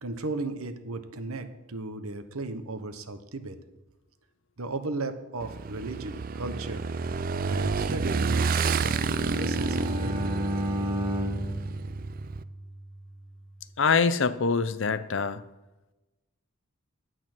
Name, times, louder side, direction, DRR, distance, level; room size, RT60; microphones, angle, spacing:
voice 1, 0.0-3.6 4.6-6.9 7.5-10.3, right 2 dB, 80° right, 1.0 m, -36 dB
Motorcycle / Engine, 5.4-12.4, right 4 dB, 40° right, 0.4 m, -29 dB
Bowed string instrument, 8.7-12.8, left 1 dB, 25° right, 0.9 m, -33 dB
voice 2, 13.8-15.4, left 5 dB, 60° left, 0.6 m, -24 dB
11.0 x 9.0 x 6.1 m
head